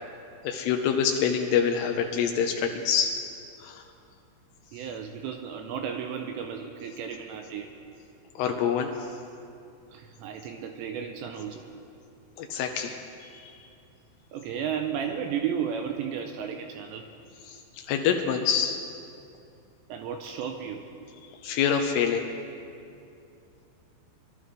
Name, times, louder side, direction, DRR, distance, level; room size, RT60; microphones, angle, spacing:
voice 1, 0.4-3.1 3.6-3.8 8.4-9.1 12.4-13.6 17.5-17.6 17.9-18.8 21.4-22.3, left 7 dB, 90° left, 4 dB, 2.3 m, -26 dB
voice 2, 4.7-7.7 9.9-11.6 14.3-17.0 19.9-20.8, right 7 dB, 85° right, 4 dB, 2.7 m, -33 dB
23.0 x 12.5 x 3.3 m, 2.6 s
omnidirectional pair, 5.5 m